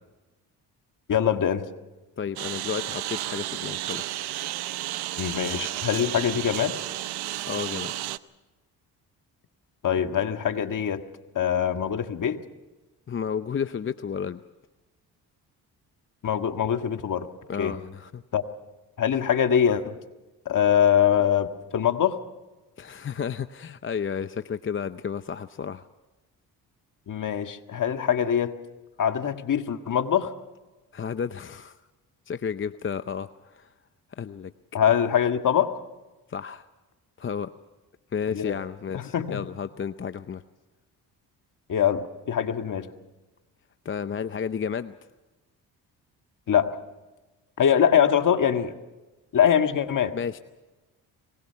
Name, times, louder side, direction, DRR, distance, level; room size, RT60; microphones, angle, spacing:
voice 1, 1.1-1.6 5.2-6.8 9.8-11.0 11.4-12.4 16.2-17.3 17.6-17.8 18.3-18.4 19.0-20.0 20.5-21.5 21.7-22.2 27.1-28.5 29.0-30.3 34.7-35.8 38.3-38.6 38.9-39.4 41.7-42.9 46.5-46.8 47.6-48.7 49.3-50.1, left 9 dB, 55° left, 7 dB, 1.7 m, -23 dB
voice 2, 2.2-4.2 7.5-7.9 13.1-14.4 17.5-18.2 22.8-25.8 30.9-31.8 32.3-33.7 34.2-34.5 36.3-36.6 37.2-37.5 38.1-40.4 43.8-45.0 50.1-50.4, left 7 dB, 30° left, 11 dB, 0.7 m, -32 dB
Engine, 2.4-8.2, right 15 dB, 80° right, 0.8 m, -32 dB
24.5 x 20.0 x 5.8 m, 1.1 s
cardioid pair, 80°, 38 cm